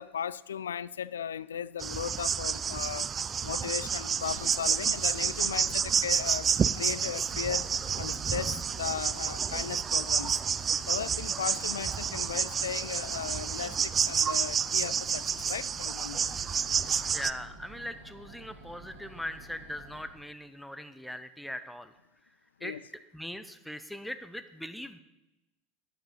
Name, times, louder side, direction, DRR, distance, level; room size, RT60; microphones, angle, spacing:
voice 1, 0.0-3.1 3.4-6.5 6.7-7.7 8.0-10.4 10.9-16.3 22.6-22.8, left 8 dB, 75° left, 0.4 m, -36 dB
sound 1, 1.8-17.3, right 7 dB, 25° right, 0.4 m, -30 dB
sound 2, 4.1-20.3, right 1 dB, 70° right, 1.9 m, -50 dB
voice 2, 17.1-21.9 22.6-22.7 23.1-25.0, left 1 dB, ahead, 0.9 m, -40 dB
11.5 x 9.8 x 5.5 m
figure-of-eight pair, 80°, 0 cm